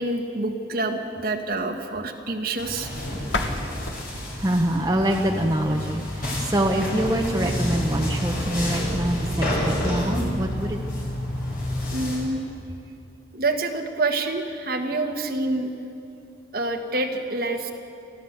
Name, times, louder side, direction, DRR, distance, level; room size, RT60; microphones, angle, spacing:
voice 1, 0.0-2.9 11.9-12.4 13.3-15.7 16.5-17.7, right 2 dB, 50° right, 3 dB, 1.7 m, -27 dB
sound 1, 2.6-12.2, left 1 dB, 50° left, 6.2 m, -29 dB
sound 2, 3.3-6.1, left 2 dB, 70° left, 1.6 m, -34 dB
voice 2, 4.4-9.5 9.8-11.0, right 1 dB, 20° right, 1 dB, 1.1 m, -25 dB
29.5 x 12.5 x 8.2 m, 2.6 s
head